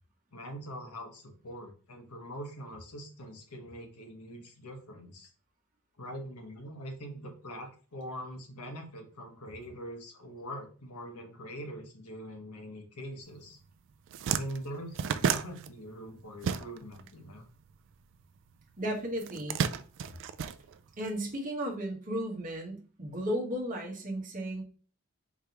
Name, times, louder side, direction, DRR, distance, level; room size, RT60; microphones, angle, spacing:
voice 1, 0.3-5.3 6.0-13.6 14.3-17.5, equal, 85° left, 2 dB, 1.2 m, -43 dB
sound 1, 13.5-13.6 13.9-17.1 17.3-18.5 19.2-21.2, right 7 dB, 55° right, 0.3 m, -32 dB
voice 2, 18.8-19.6 21.0-24.6, equal, 35° right, -1 dB, 1.1 m, -34 dB
4.7 x 3.4 x 2.9 m, 0.39 s
head